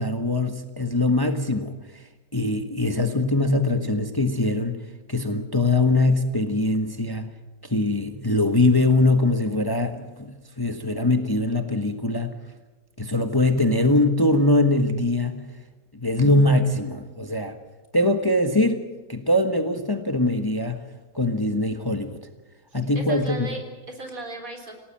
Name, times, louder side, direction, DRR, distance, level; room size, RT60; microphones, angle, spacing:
voice 1, 0.0-2.0 2.3-4.8 5.1-7.3 7.6-12.3 13.0-15.4 15.9-17.6 17.9-20.8 21.1-22.2 22.7-23.5, left 2 dB, 15° left, 6 dB, 1.4 m, -22 dB
voice 2, 22.9-24.7, right 2 dB, 65° right, 4 dB, 4.4 m, -36 dB
28.0 x 18.0 x 7.6 m, 1.1 s
omnidirectional pair, 1.6 m